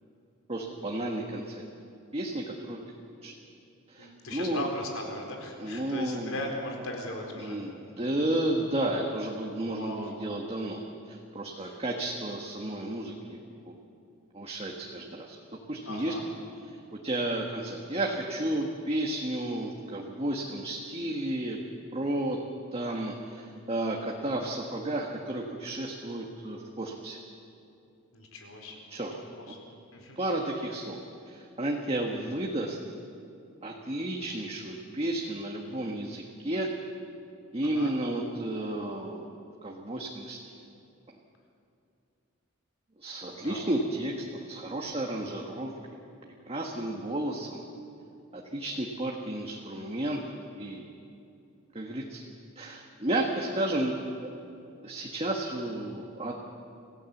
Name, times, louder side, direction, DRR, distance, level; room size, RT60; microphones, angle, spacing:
voice 1, 0.5-1.6 2.1-2.8 3.2-3.3 3.9-4.7 5.6-6.3 7.4-13.8 14.3-16.2 17.0-21.6 21.9-22.4 22.7-27.2 28.9-29.1 30.2-31.0 31.3-32.8 33.6-36.7 37.5-39.3 39.6-40.4 43.0-45.7 46.5-47.6 48.3-50.9 51.7-52.2 52.5-54.3 54.8-56.3, right 1 dB, 30° right, 0 dB, 1.5 m, -32 dB
voice 2, 4.0-7.6 9.6-10.1 11.6-11.8 15.9-16.2 28.1-28.8 29.1-29.6 29.9-30.2 37.6-37.9 43.3-43.6, left 2 dB, 85° left, 1 dB, 4.3 m, -38 dB
26.5 x 16.0 x 7.2 m, 2.7 s
head